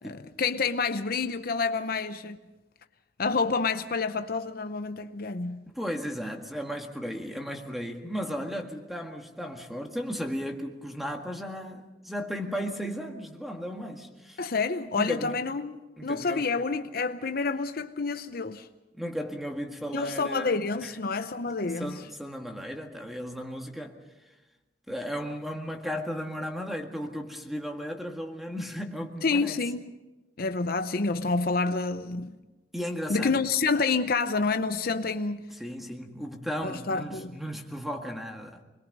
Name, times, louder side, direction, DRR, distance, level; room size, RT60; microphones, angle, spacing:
voice 1, 0.0-2.4 3.2-5.7 14.4-15.7 16.0-18.7 19.9-21.9 29.2-29.8 30.4-32.3 33.1-35.4 36.6-37.4, left 4 dB, 55° left, 0.7 m, -28 dB
voice 2, 5.7-14.4 15.0-15.4 16.0-16.5 18.9-20.5 20.8-20.9 21.8-24.0 24.9-29.6 32.7-33.4 35.6-38.6, equal, ahead, 1.8 m, -35 dB
26.5 x 21.5 x 5.4 m
head